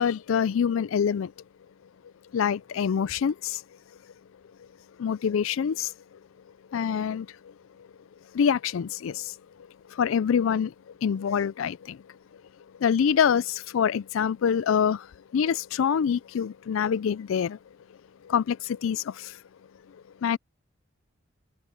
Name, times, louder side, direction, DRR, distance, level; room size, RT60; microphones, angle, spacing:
voice 1, 0.0-1.3 2.3-3.6 5.0-5.9 6.7-7.3 8.3-9.3 9.9-10.7 11.0-12.0 12.8-15.1 15.3-17.6 18.2-19.4 20.2-20.4, left 7 dB, 85° left, 0.4 m, -25 dB
head